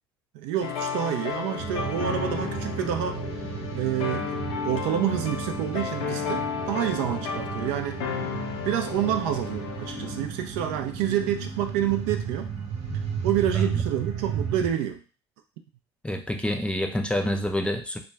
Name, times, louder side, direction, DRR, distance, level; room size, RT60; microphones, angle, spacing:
voice 1, 0.3-3.2 3.7-8.1 8.6-12.5 13.2-15.0, right 10 dB, 70° right, 7 dB, 0.4 m, -28 dB
sound 1, 0.6-10.3, left 7 dB, 75° left, 0.6 m, -33 dB
sound 2, 1.6-14.7, right 6 dB, 50° right, 0.8 m, -33 dB
voice 2, 16.0-18.0, left 1 dB, 10° left, 4 dB, 0.4 m, -28 dB
2.3 x 2.1 x 3.2 m, 0.34 s
hypercardioid pair, 70°, 14 cm